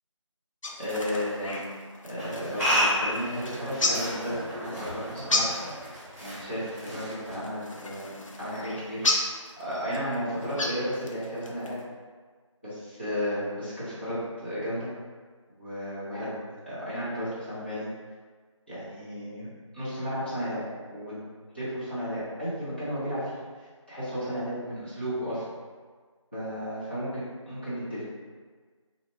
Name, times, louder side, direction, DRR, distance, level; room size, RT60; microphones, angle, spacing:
sound 1, 0.6-11.8, left 2 dB, 80° left, 0.5 m, -34 dB
voice 1, 0.8-1.6 2.0-5.5 6.1-9.0 9.3-11.8 12.6-14.9 15.6-16.4 16.7-17.9 18.7-20.6 20.9-21.2 21.5-23.3 23.9-25.4 26.3-27.2 27.5-28.0, equal, 20° left, -12 dB, 0.7 m, -33 dB
sound 2, 2.2-7.8, equal, 30° right, 1.1 m, -32 dB
2.4 x 2.3 x 2.9 m, 1.5 s
figure-of-eight pair, 175°, 16 cm